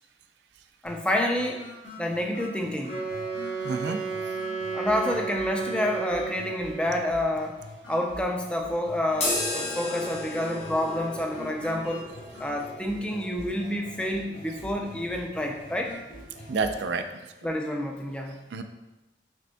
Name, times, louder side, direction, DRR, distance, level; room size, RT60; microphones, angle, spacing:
sound 1, 0.8-16.8, left 1 dB, 85° left, 1.4 m, -45 dB
voice 1, 0.8-1.6 2.0-3.0 4.7-7.6 7.9-12.1 12.4-16.0 17.4-18.4, left 1 dB, 5° left, 1 dB, 0.3 m, -28 dB
Wind instrument woodwind instrument, 2.8-7.0, right 5 dB, 60° left, 1.5 m, -33 dB
voice 2, 3.6-4.0 16.5-17.0 18.5-18.6, right 4 dB, 70° right, 8 dB, 0.3 m, -28 dB
sound 2, 9.1-16.9, left 2 dB, 35° left, 0.7 m, -36 dB
5.2 x 3.4 x 2.2 m, 1.0 s
head